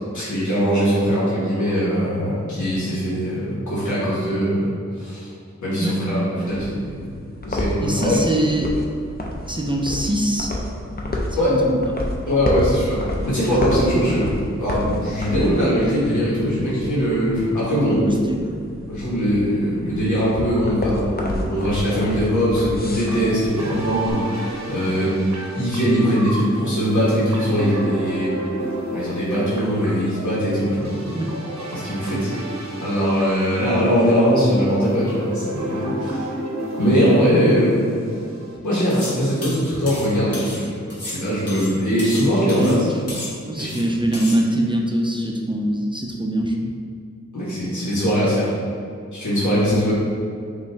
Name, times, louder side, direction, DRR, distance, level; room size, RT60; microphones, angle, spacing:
voice 1, 0.1-5.3 5.6-7.0 7.4-8.2 11.4-11.6 12.3-14.3 14.6-18.0 18.9-28.3 28.9-31.1 31.7-36.3 36.8-38.0 38.6-40.7 41.0-42.9 43.6-43.8 47.3-48.5 49.1-49.9, equal, 85° left, -9 dB, 1.3 m, -21 dB
sound 1, 6.5-24.1, left 1 dB, 35° left, 0.6 m, -30 dB
voice 2, 7.8-8.7 9.5-10.6 11.3-11.8 18.0-18.6 31.1-31.3 42.5-43.0 43.4-46.8 49.5-49.8, right 1 dB, 15° right, 0 dB, 0.5 m, -23 dB
sound 2, 22.6-38.6, right 1 dB, 70° right, 0.8 m, -31 dB
sound 3, 38.9-39.2 39.4-40.6 40.9-42.2 42.5-42.8 43.1-43.8 44.1-44.4, left 1 dB, 55° left, 1.3 m, -34 dB
5.2 x 2.6 x 3.4 m, 2.3 s
wide cardioid pair, 70°, 29 cm